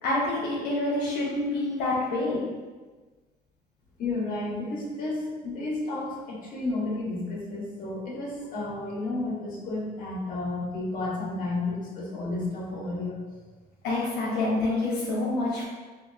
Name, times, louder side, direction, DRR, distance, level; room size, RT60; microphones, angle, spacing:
voice 1, 0.0-2.5 13.8-15.7, left 2 dB, 85° left, -6 dB, 0.8 m, -27 dB
voice 2, 4.0-13.2, left 2 dB, 55° left, -5 dB, 1.3 m, -32 dB
5.1 x 2.4 x 2.3 m, 1.3 s
cardioid pair, 110°, 17 cm